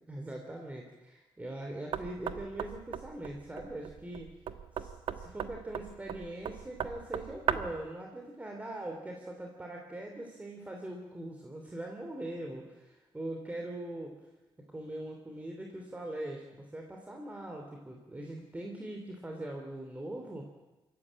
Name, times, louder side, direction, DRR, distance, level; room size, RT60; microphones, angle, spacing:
voice 1, 0.1-4.4 4.7-14.2 14.7-20.4, right 1 dB, 15° right, 1 dB, 2.9 m, -41 dB
Knock, 1.9-7.8, right 8 dB, 75° right, 1.2 m, -37 dB
25.5 x 14.5 x 8.7 m, 1.1 s
cardioid pair, 115°, 9 cm